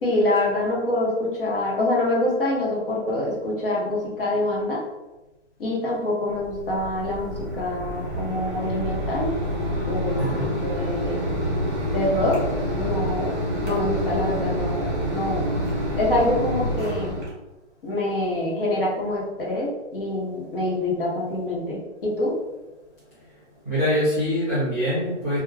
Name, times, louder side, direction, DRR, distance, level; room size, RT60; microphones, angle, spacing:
voice 1, 0.0-4.8 5.6-9.3 9.9-10.2 10.6-11.2 11.9-12.4 12.8-13.3 13.6-15.4 16.0-17.2 17.8-22.3, left 1 dB, 50° left, -4 dB, 1.0 m, -25 dB
Mechanisms, 6.3-17.3, equal, 5° right, 0.8 m, -27 dB
voice 2, 10.2-10.5 23.6-25.4, equal, 15° left, -14 dB, 0.4 m, -24 dB
2.3 x 2.3 x 3.3 m, 1.1 s
hypercardioid pair, 175°, 35 cm